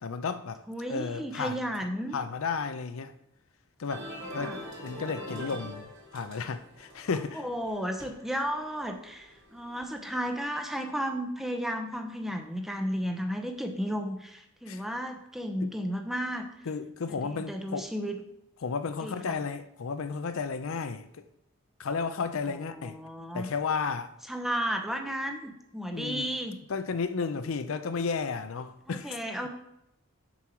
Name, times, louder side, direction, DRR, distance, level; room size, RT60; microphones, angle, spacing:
voice 1, 0.0-0.6 0.9-1.6 2.1-3.1 3.8-4.1 4.3-4.5 4.8-5.9 6.1-7.4 14.7-14.8 15.6-15.7 16.7-17.9 18.6-21.2 21.8-23.0 23.3-24.1 25.9-26.3 26.7-29.2, left 5 dB, 70° left, 0.5 m, -33 dB
voice 2, 0.7-2.1 4.3-4.6 7.3-16.5 17.1-18.2 19.0-19.4 22.5-23.5 24.3-26.6 28.9-29.5, equal, ahead, 0.7 m, -33 dB
sound 1, 3.9-10.2, equal, 55° right, 3.1 m, -44 dB
7.1 x 4.6 x 5.9 m
head